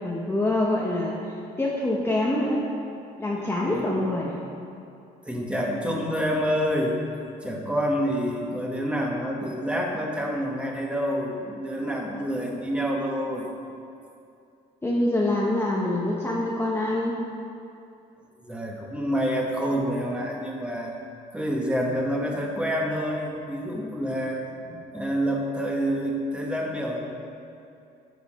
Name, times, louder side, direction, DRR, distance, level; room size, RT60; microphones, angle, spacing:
voice 1, 0.0-2.7 3.2-4.4 14.8-17.2, left 1 dB, 15° left, -3 dB, 1.1 m, -25 dB
voice 2, 5.2-7.0 7.4-13.5 18.4-20.9 21.3-27.0, equal, 5° right, -1 dB, 1.5 m, -28 dB
12.5 x 7.1 x 4.3 m, 2.5 s
cardioid pair, 110°, 17 cm